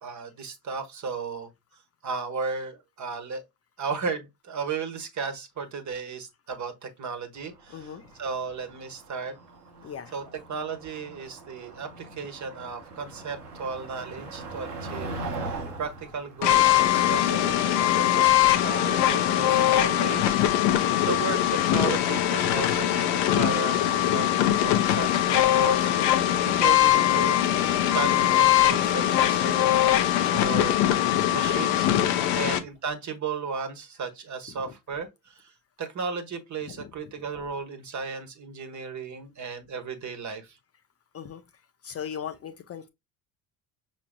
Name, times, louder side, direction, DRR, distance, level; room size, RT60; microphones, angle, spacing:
voice 1, 0.0-1.5 2.0-3.4 3.8-9.4 10.1-15.1 15.4-18.3 18.6-25.9 26.4-27.4 27.9-30.8 31.3-31.9 32.3-35.5 35.8-40.6, right 5 dB, 40° right, 1.4 m, -35 dB
Motor vehicle (road), 7.4-17.8, right 2 dB, 90° right, 1.1 m, -40 dB
voice 2, 7.7-8.1 9.8-10.1 20.8-21.1 32.1-32.5 34.6-34.7 36.7-36.8 41.1-41.4 41.8-42.9, left 8 dB, 30° left, 0.7 m, -38 dB
sound 1, 16.4-32.6, left 12 dB, 65° left, 0.8 m, -22 dB
6.0 x 3.1 x 2.2 m
hypercardioid pair, 60°, 45 cm